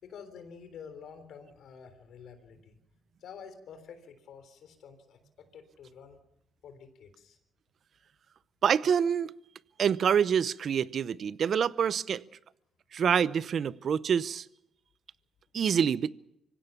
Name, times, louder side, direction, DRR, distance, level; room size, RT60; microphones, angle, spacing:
voice 1, 0.0-2.8 3.2-6.2 6.6-7.4, left 6 dB, 75° left, 3.6 m, -49 dB
voice 2, 8.6-9.3 9.8-12.2 12.9-14.5 15.5-16.1, right 7 dB, 55° right, 0.7 m, -26 dB
25.0 x 16.5 x 7.2 m
cardioid pair, 90°, 0 cm